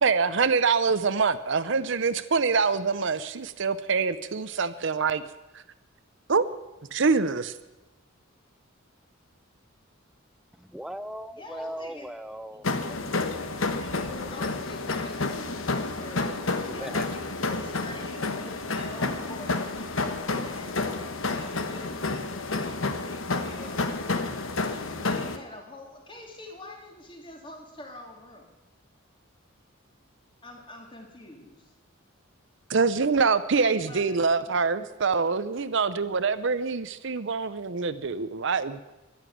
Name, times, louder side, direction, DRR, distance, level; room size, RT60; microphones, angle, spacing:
voice 1, 0.0-5.2 6.3-6.4 6.9-7.5 32.7-38.8, right 5 dB, 65° right, 13 dB, 0.7 m, -25 dB
voice 2, 10.6-12.7 16.8-17.0, equal, ahead, 12 dB, 0.5 m, -38 dB
voice 3, 11.3-12.1 12.5-23.9 24.4-28.6 30.4-31.7 33.6-34.7, left 2 dB, 25° left, 1 dB, 2.8 m, -46 dB
sound 1, 12.6-25.4, left 3 dB, 80° left, 1.3 m, -30 dB
12.0 x 11.0 x 9.3 m, 1.1 s
head